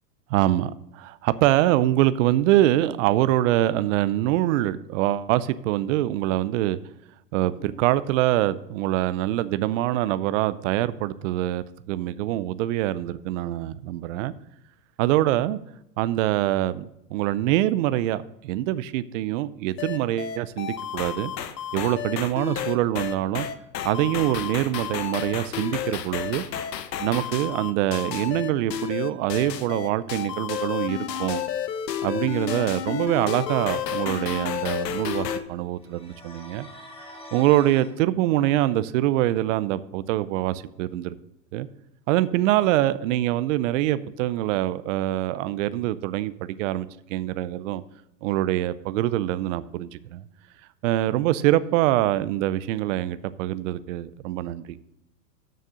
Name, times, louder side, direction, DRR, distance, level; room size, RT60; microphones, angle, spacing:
voice 1, 0.3-6.8 7.3-14.3 15.0-15.6 16.0-21.3 21.7-23.5 23.8-26.4 27.0-31.4 32.0-36.7 37.3-41.2 41.5-41.7 42.1-47.8 48.2-50.2 50.8-54.8, right 14 dB, 50° right, 15 dB, 0.6 m, -24 dB
sound 1, 19.8-35.4, left 9 dB, 80° left, 1.1 m, -31 dB
sound 2, 35.8-37.9, left 1 dB, 10° left, 1.7 m, -45 dB
6.6 x 6.5 x 7.6 m, 0.82 s
hypercardioid pair, 130°, 49 cm